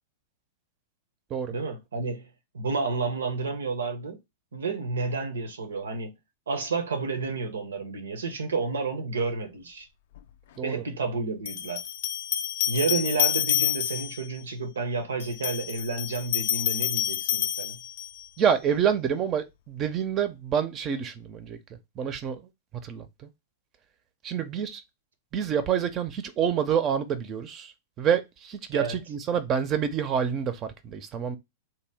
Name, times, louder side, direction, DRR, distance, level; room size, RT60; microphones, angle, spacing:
voice 1, 1.5-2.3 2.5-4.2 4.5-6.1 6.5-9.9 10.6-11.8 12.7-17.8 28.7-29.0, right 4 dB, 85° right, 0.7 m, -30 dB
sound 1, 10.2-10.3 11.5-14.3 15.2-18.3, left 11 dB, 65° left, 0.3 m, -28 dB
voice 2, 18.4-22.4 22.8-23.3 24.2-24.8 25.3-31.4, right 8 dB, 35° right, 0.6 m, -27 dB
2.9 x 2.1 x 3.3 m
hypercardioid pair, 105°, 0 cm